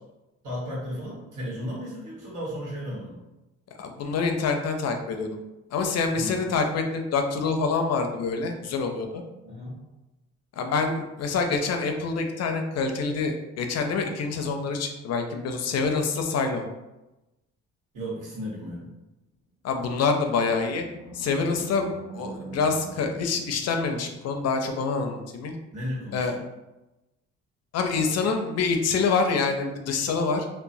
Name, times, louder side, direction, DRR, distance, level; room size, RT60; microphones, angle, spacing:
voice 1, 0.4-3.2 6.1-6.4 9.4-9.8 17.9-18.9 25.7-26.4, equal, 80° right, -6 dB, 1.4 m, -34 dB
voice 2, 3.8-5.4 5.7-9.2 10.6-16.7 19.6-20.8 21.1-21.9 22.1-25.5 26.1-26.4 27.7-30.5, left 4 dB, 55° left, 5 dB, 0.5 m, -26 dB
Animal, 20.4-24.4, right 2 dB, 15° right, 0.6 m, -44 dB
2.9 x 2.1 x 2.6 m, 1.0 s
cardioid pair, 90°, 30 cm